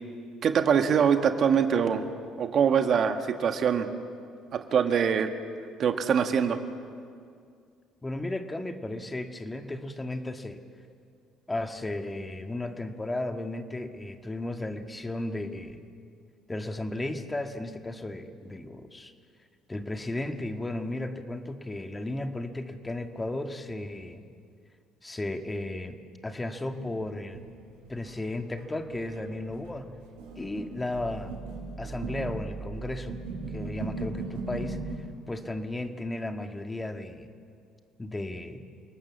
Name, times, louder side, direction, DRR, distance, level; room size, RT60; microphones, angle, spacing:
voice 1, 0.4-2.0 2.4-3.9 4.5-5.3 5.8-6.6, right 7 dB, 55° right, 7 dB, 1.7 m, -23 dB
voice 2, 8.0-10.6 11.5-15.8 16.5-19.1 19.7-24.2 25.0-26.0 26.2-27.4 27.9-29.9 30.4-31.3 31.8-33.2 33.5-37.3 38.0-38.6, left 2 dB, 15° left, 6 dB, 2.0 m, -34 dB
sound 1, 26.4-28.2 28.6-34.9, right 3 dB, 80° right, 5.7 m, -38 dB
29.0 x 19.0 x 7.3 m, 2.2 s
hypercardioid pair, 60°, 0 cm